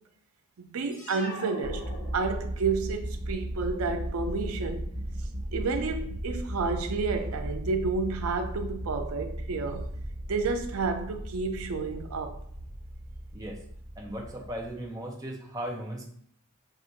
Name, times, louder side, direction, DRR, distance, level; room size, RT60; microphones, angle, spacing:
voice 1, 0.6-1.8 2.1-4.9 5.5-9.9 10.3-12.4, right 4 dB, 75° right, 0.4 m, -30 dB
sound 1, 0.9-2.8, left 1 dB, 35° left, 1.2 m, -42 dB
sound 2, 1.6-14.8, right 1 dB, 45° right, 1.1 m, -36 dB
voice 2, 14.0-16.1, right 1 dB, 15° right, 0.7 m, -37 dB
5.9 x 2.5 x 2.7 m
head